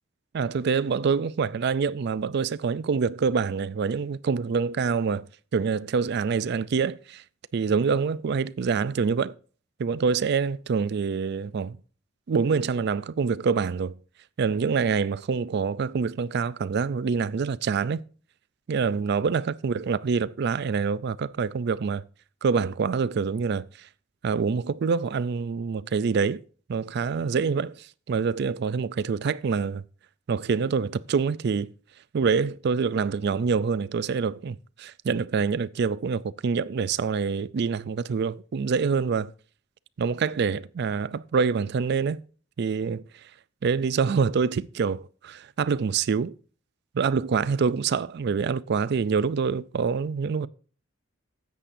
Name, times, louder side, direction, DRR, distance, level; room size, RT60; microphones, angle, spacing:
voice 1, 0.3-5.3 5.5-7.2 7.5-9.3 9.8-11.8 12.3-13.9 14.4-18.0 18.7-22.0 22.4-23.9 24.2-26.4 26.7-29.8 30.3-31.7 32.1-39.3 40.0-42.2 42.6-43.0 43.6-46.3 46.9-50.5, right 5 dB, 55° right, 0.4 m, -26 dB
13.0 x 8.4 x 2.6 m
head